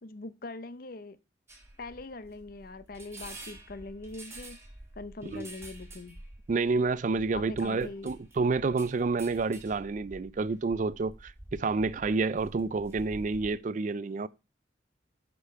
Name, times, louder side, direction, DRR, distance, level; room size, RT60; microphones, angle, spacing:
voice 1, 0.0-1.2 1.8-4.6 5.0-6.2 7.3-8.1, left 3 dB, 55° left, 0.7 m, -42 dB
sound 1, 1.5-13.6, right 1 dB, 15° right, 1.8 m, -49 dB
voice 2, 6.5-14.3, right 4 dB, 45° right, 0.4 m, -29 dB
8.1 x 5.2 x 5.6 m
head